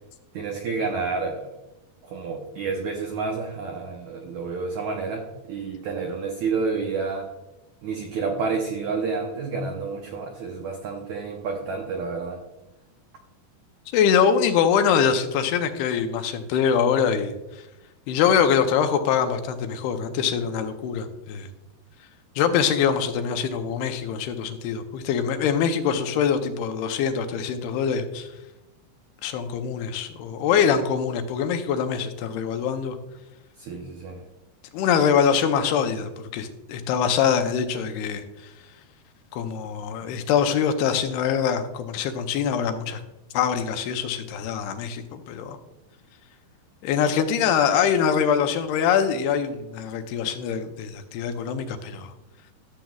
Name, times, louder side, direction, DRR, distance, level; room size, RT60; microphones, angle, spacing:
voice 1, 0.3-1.5 2.0-7.3 7.8-12.4 33.6-34.2 40.0-40.2, right 4 dB, 90° right, 2 dB, 1.6 m, -29 dB
voice 2, 13.9-17.3 18.1-21.5 22.4-28.3 29.2-33.0 34.7-38.2 39.3-43.0 43.3-45.6 46.8-52.1, left 7 dB, 85° left, 7 dB, 2.7 m, -23 dB
13.5 x 7.5 x 2.3 m, 0.99 s
omnidirectional pair, 4.5 m